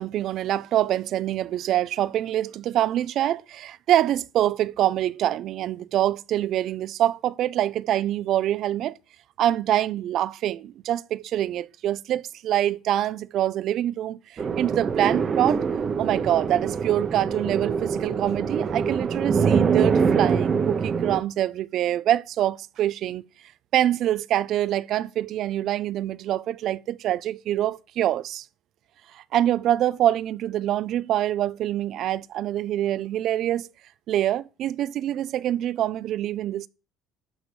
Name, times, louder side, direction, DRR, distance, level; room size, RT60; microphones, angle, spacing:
voice 1, 0.0-9.0 9.4-15.6 16.0-23.2 23.7-28.4 29.1-33.7 34.1-36.7, right 12 dB, 45° right, 0.5 m, -25 dB
sound 1, 14.4-21.2, right 6 dB, 25° right, 0.8 m, -24 dB
12.5 x 4.7 x 8.3 m
cardioid pair, 175°, 0 cm